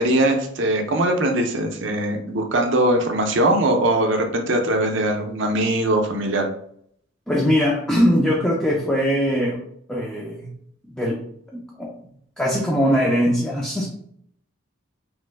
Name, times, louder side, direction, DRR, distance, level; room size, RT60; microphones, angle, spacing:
voice 1, 0.0-6.5, right 1 dB, 55° right, 4 dB, 0.5 m, -21 dB
voice 2, 7.3-9.6 9.9-10.5 10.9-11.2 11.5-11.9 12.4-13.9, equal, 5° left, -4 dB, 0.3 m, -21 dB
3.0 x 2.0 x 3.3 m, 0.67 s
head